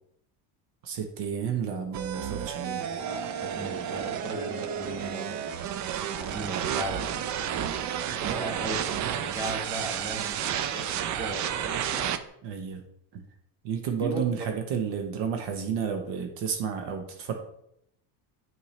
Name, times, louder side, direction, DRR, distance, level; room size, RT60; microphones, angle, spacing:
voice 1, 0.8-2.8 12.4-12.8 13.1-13.2 13.6-17.3, right 7 dB, 65° right, 4 dB, 1.0 m, -31 dB
sound 1, 1.9-12.2, right 9 dB, 40° right, 0.5 m, -31 dB
voice 2, 2.8-5.5 6.1-12.1 14.0-14.5, right 1 dB, 10° right, -1 dB, 1.6 m, -37 dB
6.8 x 4.5 x 3.2 m, 0.73 s
cardioid pair, 115°, 44 cm